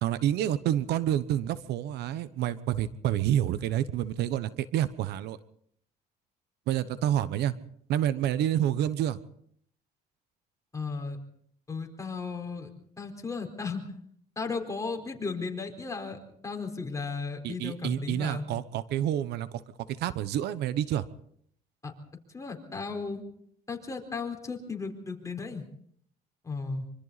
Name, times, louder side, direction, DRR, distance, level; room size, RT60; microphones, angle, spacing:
voice 1, 0.0-5.4 6.7-7.5 7.9-9.2 17.4-19.6 19.9-21.0, right 11 dB, 80° right, 15 dB, 1.0 m, -28 dB
voice 2, 10.7-11.2 11.7-12.7 13.0-14.0 14.4-18.5 21.8-21.9 22.3-23.2 23.7-25.6 26.4-26.9, left 4 dB, 20° left, 2 dB, 4.4 m, -35 dB
25.0 x 25.0 x 4.2 m, 0.66 s
cardioid pair, 110°, 17 cm